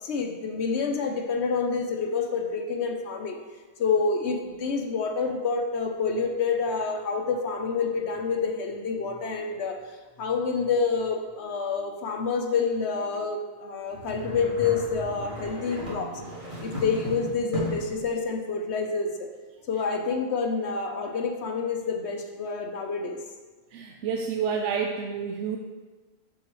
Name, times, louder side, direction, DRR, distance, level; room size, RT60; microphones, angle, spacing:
voice 1, 0.0-3.4 3.8-9.8 10.2-16.1 16.6-19.3 19.7-23.2, left 5 dB, 70° left, 4 dB, 1.1 m, -28 dB
sound 1, 13.9-18.0, right 1 dB, 45° right, 2.2 m, -36 dB
voice 2, 23.7-25.6, right 6 dB, 85° right, 2 dB, 0.9 m, -29 dB
7.8 x 7.2 x 3.1 m, 1.3 s
omnidirectional pair, 1.2 m